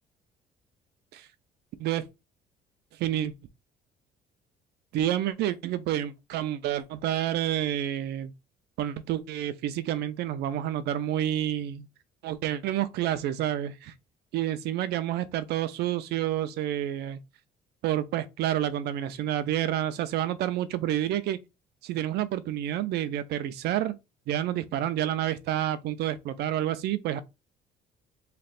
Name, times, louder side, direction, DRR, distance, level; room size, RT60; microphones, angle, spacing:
voice 1, 3.0-3.3 4.9-8.3 8.8-11.9 12.2-13.9 14.3-17.2 17.8-21.4 21.8-24.0 24.3-27.2, right 12 dB, 75° right, 0.6 m, -29 dB
3.3 x 2.4 x 4.2 m
cardioid pair, 110°, 17 cm